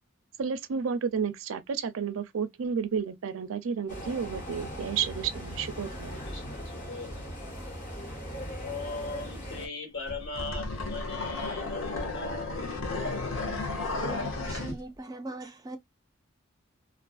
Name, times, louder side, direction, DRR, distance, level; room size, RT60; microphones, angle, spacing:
voice 1, 0.4-6.2, right 6 dB, 85° right, 0.4 m, -31 dB
sound 1, 3.9-9.7, equal, 40° left, 1.1 m, -39 dB
voice 2, 5.8-7.4 8.5-12.6, left 3 dB, 65° left, 1.3 m, -39 dB
sound 2, 10.1-14.8, left 3 dB, 80° left, 0.8 m, -33 dB
voice 3, 13.8-15.8, right 2 dB, 20° right, 0.3 m, -40 dB
2.5 x 2.3 x 2.3 m
head